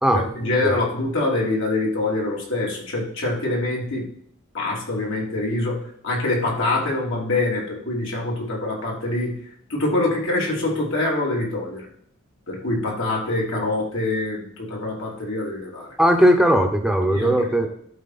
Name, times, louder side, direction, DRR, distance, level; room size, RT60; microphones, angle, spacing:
voice 1, 0.1-4.1 4.5-9.3 9.7-11.9 12.5-15.9 17.1-17.7, left 2 dB, 65° left, -3 dB, 3.5 m, -25 dB
voice 2, 16.0-17.7, equal, ahead, 5 dB, 1.0 m, -18 dB
12.0 x 4.6 x 4.2 m, 0.65 s
head